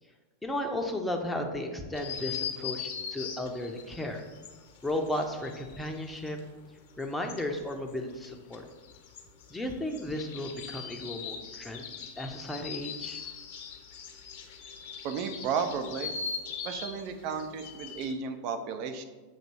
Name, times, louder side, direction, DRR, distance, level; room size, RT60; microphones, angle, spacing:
voice 1, 0.4-4.2 4.8-6.4 7.0-8.6 9.5-13.2, left 1 dB, 5° left, 3 dB, 0.7 m, -34 dB
sound 1, 1.9-6.5 6.8-18.1, left 6 dB, 50° left, 0.7 m, -41 dB
voice 2, 15.0-16.1 16.6-19.0, right 6 dB, 40° right, 8 dB, 0.5 m, -33 dB
7.3 x 2.9 x 4.3 m, 1.3 s
figure-of-eight pair, 90°, 0 cm